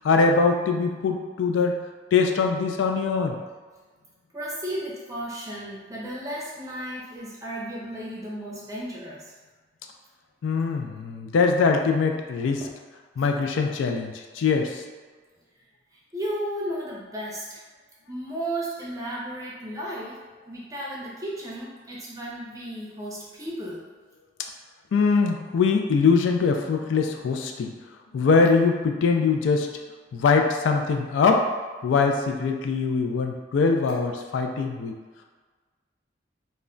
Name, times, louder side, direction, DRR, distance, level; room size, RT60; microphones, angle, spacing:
voice 1, 0.0-1.8 2.1-3.4 10.4-12.6 13.2-14.8 24.9-27.7 28.1-29.7 30.1-31.4 31.8-34.9, left 4 dB, 85° left, 3 dB, 0.3 m, -22 dB
voice 2, 4.3-9.3 12.4-12.7 16.1-17.6 18.1-23.8, right 1 dB, 20° right, -5 dB, 0.5 m, -34 dB
2.1 x 2.1 x 3.7 m, 1.4 s
head